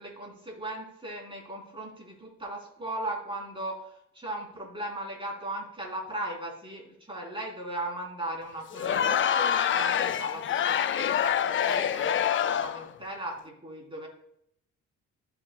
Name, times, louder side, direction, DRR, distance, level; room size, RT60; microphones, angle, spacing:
voice 1, 0.0-3.8 4.1-14.1, right 1 dB, 15° right, -2 dB, 3.3 m, -37 dB
Crowd, 8.7-12.9, left 9 dB, 40° left, 0.4 m, -26 dB
15.0 x 5.8 x 2.2 m, 0.74 s
cardioid pair, 90°, 30 cm